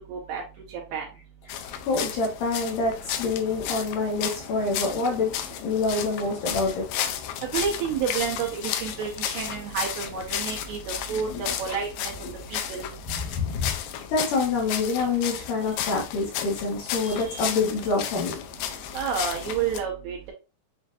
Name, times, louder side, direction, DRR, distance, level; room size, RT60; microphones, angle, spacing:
voice 1, 0.1-0.4 0.9-1.1 7.4-12.1 12.5-12.9 18.9-20.3, right 7 dB, 80° right, -1 dB, 2.2 m, -30 dB
sound 1, 1.5-19.8, left 10 dB, 85° left, 2.6 m, -33 dB
voice 2, 1.5-5.3 5.6-6.8 11.1-11.4 12.2-12.3 13.1-13.7 14.1-18.4, left 3 dB, 65° left, -2 dB, 2.3 m, -27 dB
7.4 x 2.5 x 2.5 m, 0.31 s
omnidirectional pair, 4.7 m